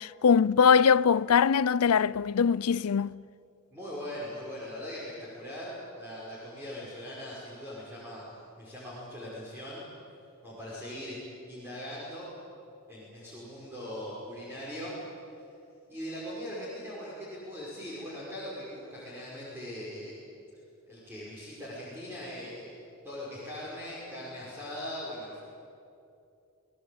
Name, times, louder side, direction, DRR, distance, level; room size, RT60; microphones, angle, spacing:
voice 1, 0.0-3.2, left 6 dB, 85° left, 0.5 m, -22 dB
voice 2, 3.7-8.2 8.6-9.8 10.4-11.2 11.5-12.3 12.9-14.9 15.9-20.2 20.9-22.7 23.0-25.4, equal, 10° right, 5.9 m, -40 dB
28.5 x 18.5 x 8.8 m
head